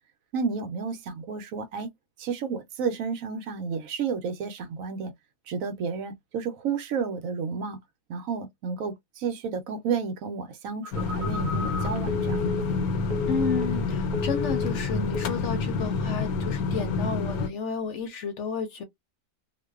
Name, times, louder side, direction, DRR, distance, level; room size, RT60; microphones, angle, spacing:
voice 1, 0.3-1.9 2.2-5.1 5.5-7.8 8.1-12.7, right 5 dB, 70° right, 1.0 m, -31 dB
Telephone, 10.8-13.9 14.1-14.8 15.1-15.5, left 5 dB, 45° right, 0.7 m, -33 dB
sound 1, 10.9-17.5, left 4 dB, 90° left, 1.1 m, -28 dB
voice 2, 13.3-18.8, left 5 dB, 65° left, 0.8 m, -31 dB
2.5 x 2.2 x 2.2 m
omnidirectional pair, 1.5 m